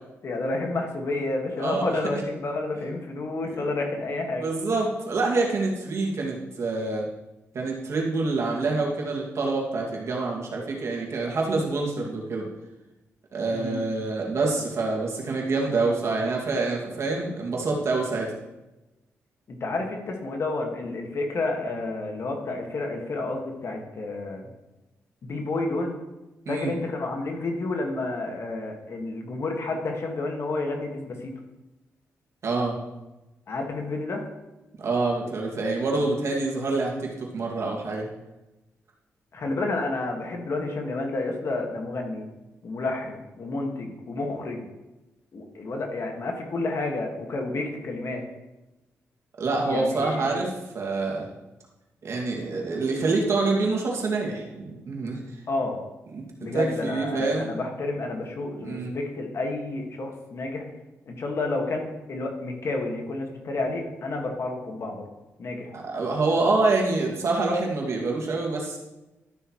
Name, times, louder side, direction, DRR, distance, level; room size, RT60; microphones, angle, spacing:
voice 1, 0.2-4.4 13.5-13.9 19.5-24.5 25.2-25.9 26.5-31.3 33.5-34.2 39.3-42.3 42.6-44.6 45.3-48.2 49.7-50.3 55.5-55.8 56.4-60.6 61.1-65.0 65.4-65.7, left 2 dB, 60° left, 2 dB, 1.8 m, -30 dB
voice 2, 1.6-2.0 3.4-3.8 4.4-7.1 7.5-12.5 13.3-18.3 26.5-26.7 32.4-32.8 34.8-38.1 49.4-51.3 52.0-55.2 56.1-56.2 56.5-57.5 58.6-58.9 65.7-68.8, right 3 dB, 60° right, -2 dB, 2.2 m, -26 dB
12.5 x 6.7 x 3.1 m, 1.0 s
cardioid pair, 80°, 5 cm